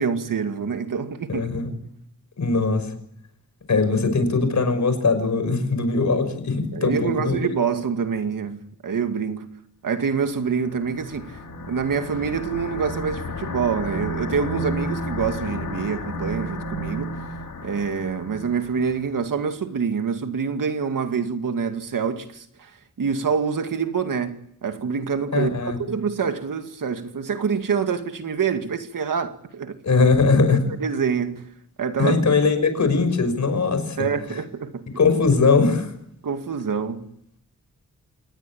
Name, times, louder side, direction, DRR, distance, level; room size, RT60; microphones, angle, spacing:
voice 1, 0.0-1.5 6.7-9.5 9.8-11.4 11.7-17.1 17.6-22.7 23.0-29.8 30.8-31.5 31.8-32.2 34.0-34.9 36.2-37.1, right 6 dB, 85° right, 2.2 m, -26 dB
voice 2, 1.3-1.7 2.4-2.9 3.7-7.4 25.3-25.8 29.8-30.6 32.0-34.1 35.0-35.9, left 4 dB, 60° left, 5.8 m, -20 dB
sound 1, 10.5-19.1, equal, 80° left, 3.2 m, -32 dB
27.0 x 19.5 x 8.7 m
wide cardioid pair, 120°, 32 cm